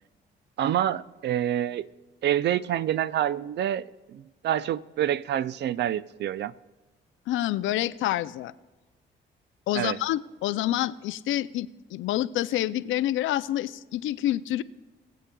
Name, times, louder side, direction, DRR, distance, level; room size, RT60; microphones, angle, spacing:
voice 1, 0.6-1.9 2.2-6.5 9.7-10.0, right 11 dB, 60° right, 17 dB, 0.4 m, -27 dB
voice 2, 7.3-8.5 9.7-14.6, left 13 dB, 80° left, 15 dB, 0.4 m, -27 dB
19.0 x 8.5 x 2.3 m, 1.2 s
cardioid pair, 90°, 20 cm